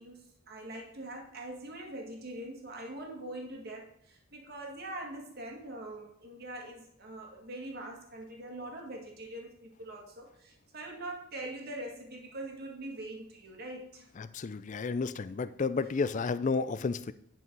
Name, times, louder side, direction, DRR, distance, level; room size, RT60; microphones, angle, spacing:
voice 1, 0.0-14.1, right 1 dB, 45° right, 1 dB, 2.0 m, -43 dB
voice 2, 14.2-17.1, left 4 dB, 35° left, 15 dB, 0.4 m, -32 dB
10.0 x 5.7 x 4.6 m, 0.70 s
head